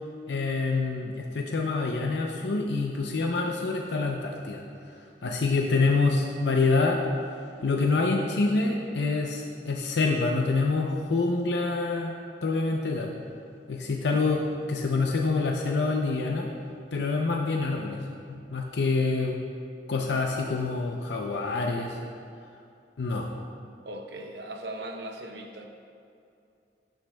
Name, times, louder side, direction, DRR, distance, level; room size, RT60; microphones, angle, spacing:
voice 1, 0.3-4.6 5.2-7.0 7.6-12.1 12.4-13.1 13.7-16.5 16.9-18.0 18.3-19.4 19.9-22.0 23.0-23.3, left 3 dB, 85° left, 1 dB, 0.6 m, -26 dB
voice 2, 23.8-25.7, right 1 dB, 75° right, 3 dB, 0.8 m, -38 dB
11.5 x 9.0 x 2.3 m, 2.6 s
head